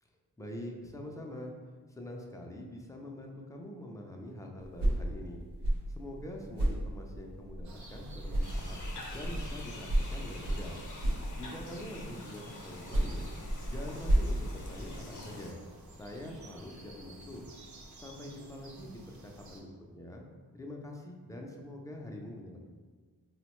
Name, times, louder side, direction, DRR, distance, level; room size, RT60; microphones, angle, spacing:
voice 1, 0.4-1.5 1.9-5.4 5.9-8.8 9.1-10.8 11.4-13.4 13.7-15.6 16.0-17.5 17.9-19.2 19.5-20.2 20.5-22.6, left 1 dB, 10° left, 1 dB, 0.3 m, -44 dB
sound 1, 4.6-8.0 8.3-11.8 12.6-15.3, right 1 dB, 85° right, 0.8 m, -33 dB
sound 2, 7.6-19.6, right 1 dB, 45° right, 0.5 m, -49 dB
sound 3, 8.4-15.5, left 2 dB, 50° left, 0.6 m, -46 dB
3.5 x 2.1 x 3.0 m, 1.5 s
wide cardioid pair, 95°, 40 cm